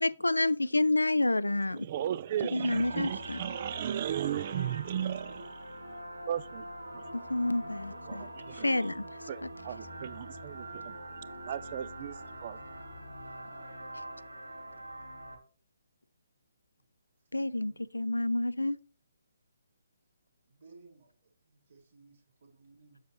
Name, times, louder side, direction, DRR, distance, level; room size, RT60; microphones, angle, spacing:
voice 1, 0.0-1.9 2.5-3.4 7.1-8.3 8.5-9.0 17.3-18.8, left 2 dB, 80° left, 0.4 m, -29 dB
voice 2, 1.7-5.8 6.3-6.7 6.9-7.0 8.1-8.7 9.3-11.0 11.4-12.2 12.4-12.6, right 10 dB, 35° right, 0.4 m, -36 dB
sound 1, 2.7-15.4, right 1 dB, 80° right, 1.5 m, -44 dB
voice 3, 17.3-17.8 20.5-21.1 21.4-23.0, right 3 dB, 55° right, 1.9 m, -58 dB
7.4 x 6.9 x 3.1 m
figure-of-eight pair, 140°, 0 cm